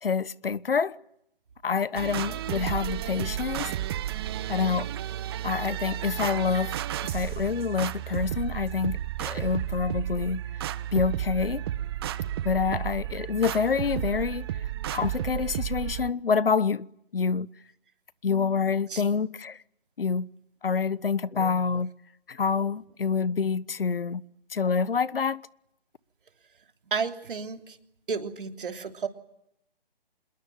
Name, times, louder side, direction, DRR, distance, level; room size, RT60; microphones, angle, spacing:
voice 1, 0.0-1.0 1.6-3.7 4.5-4.9 5.4-6.8 7.1-10.4 10.9-11.6 12.4-14.5 14.9-16.9 17.1-17.5 18.2-19.6 20.0-20.3 20.6-21.9 22.3-24.2 24.5-25.4, left 5 dB, 70° left, 1.2 m, -27 dB
sound 1, 2.0-16.1, right 12 dB, 25° right, 1.0 m, -32 dB
voice 2, 26.9-27.8 28.1-29.1, right 5 dB, 65° right, 3.3 m, -32 dB
27.0 x 21.5 x 9.3 m
figure-of-eight pair, 150°, 29 cm